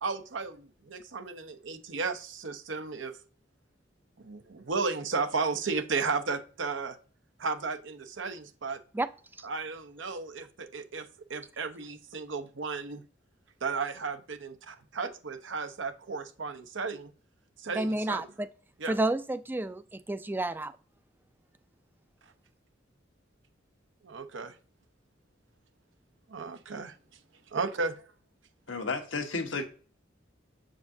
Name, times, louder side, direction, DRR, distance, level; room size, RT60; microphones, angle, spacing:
voice 1, 0.0-3.2 4.2-7.0 7.4-8.8 9.4-13.0 13.6-17.1 17.6-18.3 18.8-19.0 24.0-24.5 26.3-27.0 27.5-27.9, right 4 dB, 90° right, 0.8 m, -34 dB
voice 2, 17.8-18.5 18.9-20.7, right 2 dB, 10° right, 0.3 m, -30 dB
voice 3, 28.7-29.6, left 3 dB, 80° left, 1.2 m, -32 dB
7.3 x 5.0 x 2.7 m
head